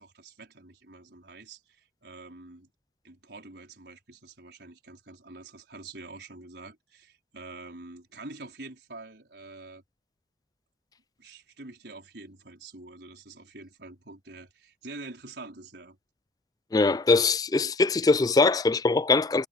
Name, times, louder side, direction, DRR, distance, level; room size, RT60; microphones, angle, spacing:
voice 1, 0.0-2.7 3.0-9.8 11.2-16.0, right 3 dB, 75° right, 4.5 m, -46 dB
voice 2, 16.7-19.5, left 3 dB, 20° left, 0.3 m, -22 dB
head